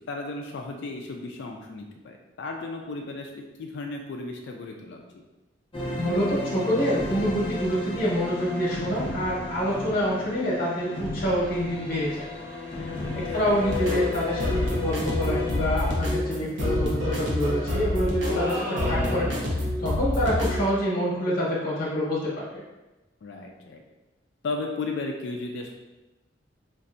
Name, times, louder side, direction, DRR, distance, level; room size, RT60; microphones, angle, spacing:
voice 1, 0.0-5.2 13.3-13.6 23.2-23.8 24.4-25.7, left 3 dB, 65° left, 2 dB, 0.4 m, -35 dB
sound 1, 5.7-15.9, left 2 dB, 30° left, 0.6 m, -33 dB
voice 2, 6.0-12.3 12.7-19.3 19.8-22.6, equal, 50° left, -6 dB, 0.9 m, -27 dB
sound 2, 13.7-20.6, left 1 dB, 70° right, 0.9 m, -27 dB
sound 3, 18.3-19.7, left 1 dB, 10° right, 0.4 m, -33 dB
4.2 x 2.5 x 2.5 m, 1.1 s
head